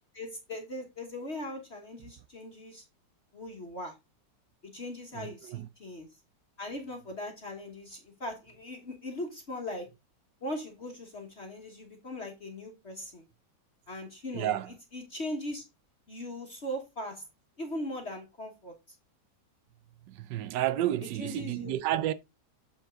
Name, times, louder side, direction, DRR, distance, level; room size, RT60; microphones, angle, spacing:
voice 1, 0.1-2.8 3.3-3.9 4.7-6.1 6.6-9.9 10.4-13.2 13.9-14.6 14.9-15.6 16.1-17.2 17.6-18.7 21.2-21.8, left 1 dB, 40° left, 1.5 m, -39 dB
voice 2, 5.1-5.7 14.3-14.8 20.1-22.1, right 13 dB, 80° right, 1.3 m, -31 dB
7.2 x 5.4 x 3.6 m
omnidirectional pair, 1.9 m